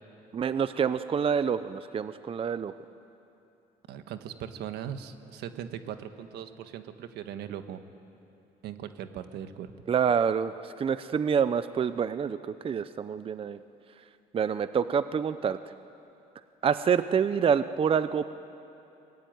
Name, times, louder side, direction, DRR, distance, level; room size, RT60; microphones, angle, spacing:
voice 1, 0.3-2.7 9.9-12.4 12.6-13.6 14.3-15.6 16.6-18.2, right 7 dB, 35° right, 13 dB, 0.6 m, -27 dB
voice 2, 3.9-7.8 8.6-9.7, right 9 dB, 80° right, 9 dB, 1.5 m, -39 dB
24.0 x 20.0 x 9.5 m, 2.8 s
cardioid pair, 110°, 17 cm